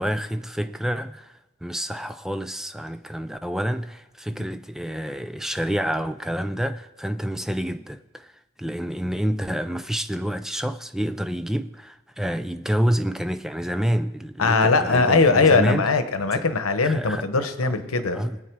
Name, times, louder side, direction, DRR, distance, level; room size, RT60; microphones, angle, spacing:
voice 1, 0.0-8.3 8.6-15.9 16.3-16.5 16.8-17.3 18.1-18.4, equal, ahead, 0.4 m, -28 dB
voice 2, 14.4-18.2, left 3 dB, 90° left, 1.1 m, -20 dB
20.5 x 8.5 x 4.7 m
head